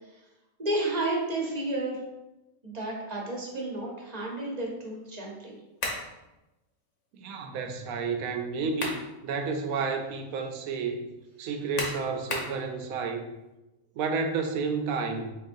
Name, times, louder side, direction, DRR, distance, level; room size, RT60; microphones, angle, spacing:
voice 1, 0.6-2.0 2.6-5.6, right 2 dB, 35° right, -2 dB, 0.8 m, -31 dB
sound 1, 5.8-6.1 8.5-9.1 9.6-9.7 11.8-12.6, left 2 dB, 75° left, 1.3 m, -33 dB
voice 2, 7.2-11.0 11.4-13.3 14.0-15.3, right 4 dB, 85° right, 5 dB, 1.0 m, -31 dB
4.2 x 4.1 x 2.6 m, 1.0 s
omnidirectional pair, 1.4 m